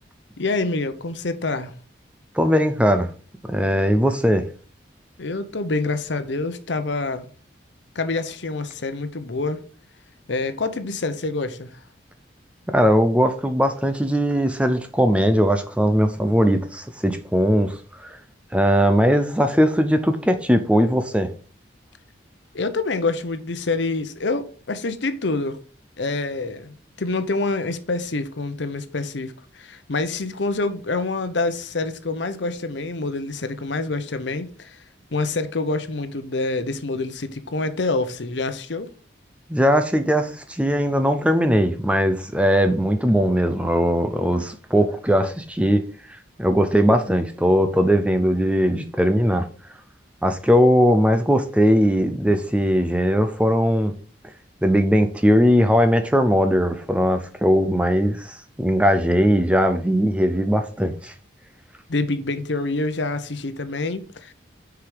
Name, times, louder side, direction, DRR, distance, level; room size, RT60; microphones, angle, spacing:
voice 1, 0.4-1.7 5.2-7.3 7.9-9.6 10.3-11.7 22.5-25.6 26.0-34.8 35.1-38.9 61.9-64.3, left 3 dB, 75° left, 0.8 m, -26 dB
voice 2, 2.3-3.1 3.5-4.5 12.7-18.2 18.5-21.3 39.5-45.8 46.4-49.5 50.2-53.9 54.6-61.1, equal, 5° right, 0.6 m, -19 dB
6.6 x 4.9 x 5.0 m
head